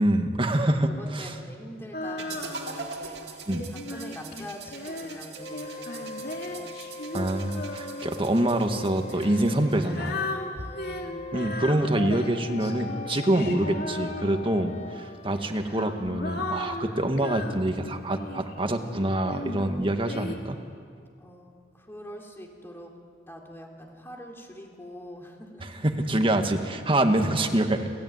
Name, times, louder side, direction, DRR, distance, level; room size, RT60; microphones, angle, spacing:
voice 1, 0.0-1.3 3.5-3.7 7.1-10.2 11.3-20.6 25.8-27.9, right 1 dB, 30° right, 5 dB, 1.8 m, -25 dB
voice 2, 0.9-3.5 3.9-6.8 10.5-11.2 21.2-22.9 23.3-25.7 27.0-27.7, equal, 15° left, 1 dB, 3.5 m, -44 dB
Female singing, 1.9-3.0 3.5-8.3 9.1-14.7 15.4-18.6 19.2-20.4, left 2 dB, 60° left, 2.6 m, -36 dB
sound 1, 2.2-10.2, right 5 dB, 70° right, 2.5 m, -43 dB
sound 2, 4.9-15.5, left 2 dB, 40° left, 1.0 m, -41 dB
28.5 x 16.0 x 9.6 m, 2.2 s
head